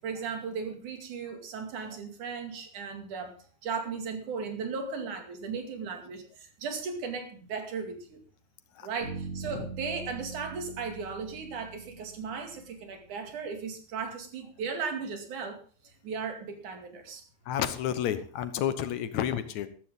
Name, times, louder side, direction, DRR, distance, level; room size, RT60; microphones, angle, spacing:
voice 1, 0.0-3.3 3.6-8.2 8.8-17.2, right 5 dB, 85° right, 5 dB, 3.8 m, -36 dB
Bass guitar, 9.0-13.0, right 4 dB, 50° right, 6.0 m, -42 dB
voice 2, 17.5-19.7, left 10 dB, 70° left, 12 dB, 2.3 m, -30 dB
14.0 x 13.5 x 3.7 m, 0.41 s
omnidirectional pair, 3.4 m